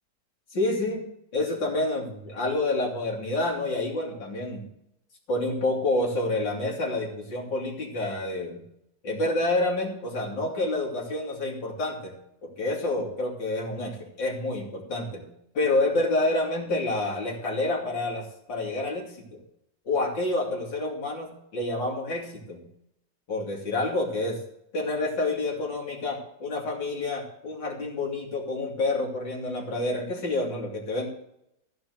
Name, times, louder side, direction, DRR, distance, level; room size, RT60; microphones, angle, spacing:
voice 1, 0.5-1.0 1.3-4.6 5.3-8.6 9.0-12.1 12.4-15.2 15.5-19.4 19.8-22.6 23.3-24.4 24.7-31.1, left 2 dB, 80° left, -1 dB, 3.3 m, -28 dB
15.0 x 5.2 x 7.9 m, 0.78 s
omnidirectional pair, 2.0 m